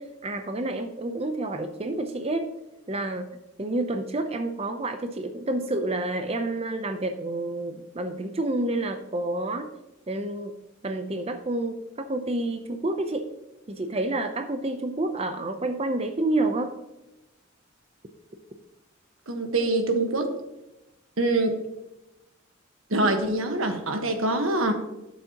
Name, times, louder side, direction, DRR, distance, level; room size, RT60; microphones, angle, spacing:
voice 1, 0.0-2.5 2.9-9.7 10.1-10.5 10.8-13.3 13.7-16.8, right 2 dB, 30° right, 6 dB, 0.6 m, -29 dB
voice 2, 19.3-20.3 21.2-21.5 22.9-24.7, right 2 dB, 85° right, 5 dB, 1.3 m, -24 dB
12.5 x 7.1 x 2.9 m, 0.96 s
head